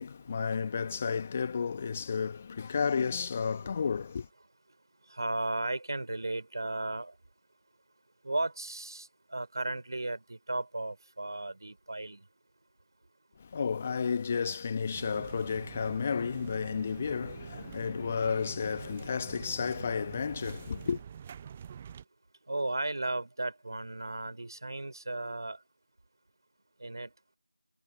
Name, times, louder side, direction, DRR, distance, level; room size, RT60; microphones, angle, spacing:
voice 1, 0.0-4.3 13.4-21.0, left 6 dB, 15° left, 1.1 m, -32 dB
voice 2, 5.1-7.1 8.2-12.2 22.5-25.6 26.8-27.1, right 2 dB, 45° right, 3.7 m, -35 dB
sound 1, 14.9-22.0, right 8 dB, 10° right, 0.4 m, -46 dB
figure-of-eight pair, 170°, 3 cm